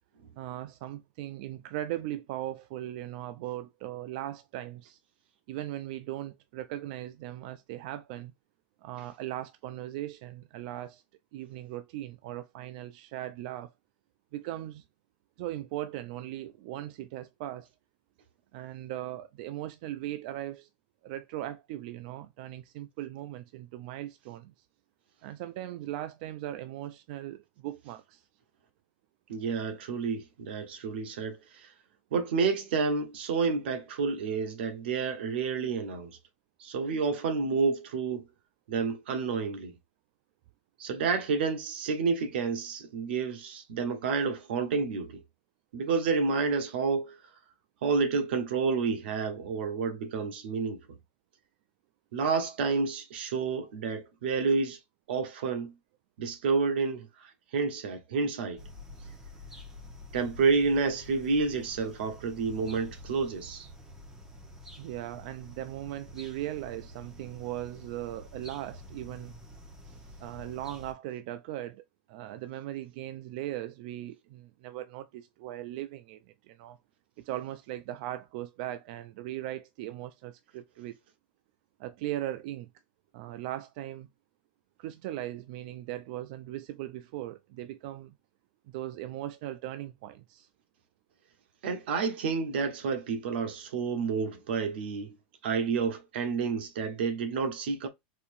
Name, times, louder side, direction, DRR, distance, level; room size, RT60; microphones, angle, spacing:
voice 1, 0.4-5.0 5.5-8.3 8.8-11.0 11.3-13.7 14.3-14.8 15.4-17.7 18.5-20.7 21.0-24.5 25.2-28.2 64.8-69.3 70.2-76.8 77.2-81.0 81.8-82.7 83.1-84.1 84.8-88.1 88.7-90.5, right 14 dB, 50° right, 0.3 m, -38 dB
voice 2, 29.3-31.7 32.1-36.2 36.6-38.2 38.7-39.7 40.8-45.2 45.7-47.2 47.8-51.0 52.1-54.8 55.1-55.7 56.2-58.6 60.1-63.7 91.6-95.2 95.4-97.9, right 5 dB, 85° right, 1.0 m, -29 dB
sound 1, 58.6-70.9, left 1 dB, 10° right, 1.0 m, -48 dB
4.2 x 2.7 x 2.6 m
supercardioid pair, 165°, 6 cm